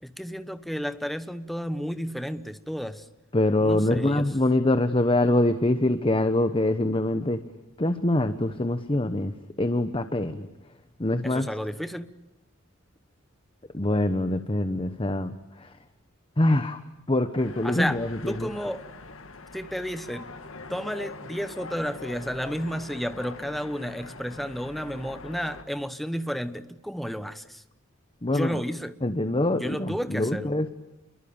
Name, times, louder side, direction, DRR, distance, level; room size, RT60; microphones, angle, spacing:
voice 1, 0.0-3.1 3.6-4.4 11.2-12.2 17.6-18.9 19.5-20.3 20.7-27.6 28.3-29.0 29.5-30.5, equal, ahead, 1.0 m, -32 dB
voice 2, 3.3-7.4 7.8-9.3 9.6-10.5 11.0-11.5 13.7-15.7 16.4-16.8 17.1-18.5 28.2-28.6 29.0-30.7, left 1 dB, 25° left, 1.0 m, -24 dB
sound 1, 17.4-25.6, left 3 dB, 80° left, 2.1 m, -43 dB
28.5 x 23.0 x 8.8 m
head